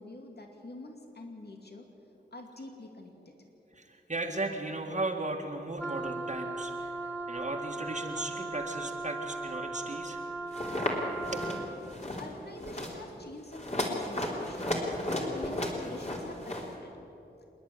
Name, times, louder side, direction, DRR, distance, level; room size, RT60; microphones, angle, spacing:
voice 1, 0.0-1.9 2.3-3.4 11.0-11.8 12.2-16.9, left 2 dB, 60° left, 2 dB, 2.7 m, -46 dB
voice 2, 3.7-6.9 7.3-10.2 11.3-11.4, right 2 dB, 40° right, 1 dB, 1.9 m, -36 dB
Wind instrument woodwind instrument, 5.8-11.8, right 2 dB, 10° left, 2.6 m, -38 dB
sound 1, 10.5-10.9 11.2-11.6 11.9-12.3 12.6-12.9 13.5-16.7, left 1 dB, 35° left, 3.7 m, -34 dB
26.5 x 10.5 x 9.7 m, 2.9 s
wide cardioid pair, 70°, 18 cm